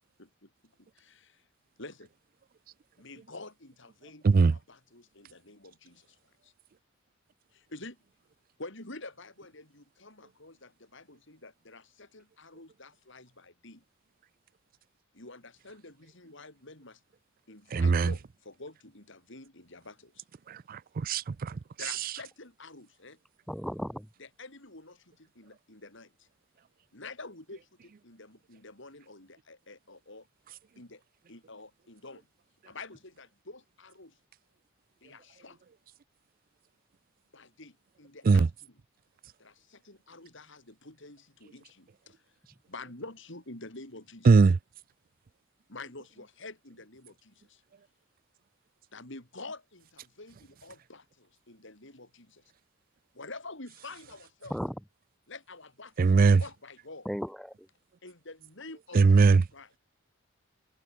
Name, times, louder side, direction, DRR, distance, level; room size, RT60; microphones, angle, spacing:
voice 1, 0.2-1.5 1.8-2.1 3.0-6.2 6.4-6.5 7.5-8.0 8.6-13.8 15.1-17.0 17.5-20.2 21.8-23.2 24.2-26.3 26.9-30.3 30.8-31.0 31.3-32.3 32.6-34.2 35.0-35.6 37.3-38.8 39.4-42.2 42.7-44.5 45.7-47.6 48.9-52.4 53.1-54.5 55.3-57.1 58.0-59.7, left 3 dB, 65° left, 5.8 m, -48 dB
voice 2, 4.2-4.5 17.7-18.1 20.5-21.6 38.3-38.5 44.3-44.6 56.0-56.4 58.9-59.4, right 4 dB, 45° right, 0.4 m, -20 dB
voice 3, 23.5-24.1 54.5-54.8 57.0-57.7, equal, ahead, 2.5 m, -35 dB
head